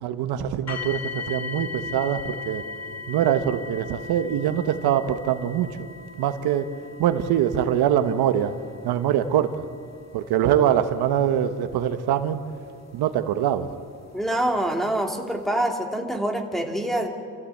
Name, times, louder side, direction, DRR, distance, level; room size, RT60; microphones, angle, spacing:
voice 1, 0.0-2.6 3.1-5.7 6.2-6.7 7.0-8.5 8.8-9.6 10.1-12.4 12.9-13.7, right 10 dB, 80° right, 9 dB, 1.2 m, -23 dB
sound 1, 0.7-13.6 14.4-14.5 15.1-15.2, left 4 dB, 45° left, 2.0 m, -39 dB
voice 2, 14.1-17.1, right 1 dB, ahead, 1 dB, 2.7 m, -25 dB
28.5 x 14.5 x 8.7 m, 2.4 s
cardioid pair, 100°, 38 cm